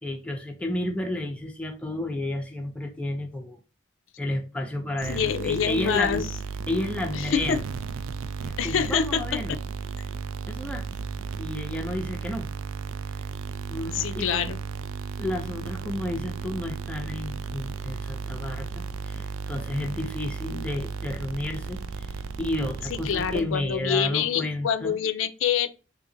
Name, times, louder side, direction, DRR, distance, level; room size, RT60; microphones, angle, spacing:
voice 1, 0.0-3.6 4.2-6.3 6.7-7.6 8.4-9.6 10.5-10.9 11.4-12.5 13.7-14.5 15.2-22.1 22.4-24.9, left 1 dB, 5° left, 0.4 m, -31 dB
sound 1, 5.0-23.8, right 5 dB, 85° right, 0.3 m, -34 dB
voice 2, 5.1-6.3 7.1-7.6 8.6-9.2 13.9-14.6 23.1-25.7, left 8 dB, 75° left, 0.4 m, -26 dB
3.8 x 2.8 x 2.6 m
head